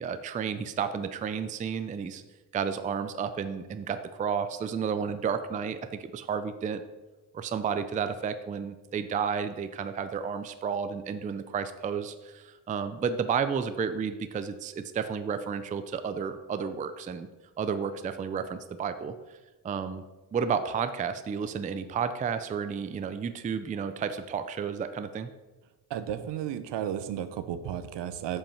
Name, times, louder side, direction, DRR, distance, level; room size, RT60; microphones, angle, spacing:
voice 1, 0.0-2.2 2.5-6.8 7.3-17.3 17.6-19.4 19.6-20.0 20.3-25.3, right 6 dB, 20° right, 10 dB, 0.3 m, -32 dB
voice 2, 25.9-28.4, right 10 dB, 75° right, 12 dB, 0.8 m, -33 dB
7.3 x 5.5 x 5.5 m, 1.1 s
cardioid pair, 140°, 43 cm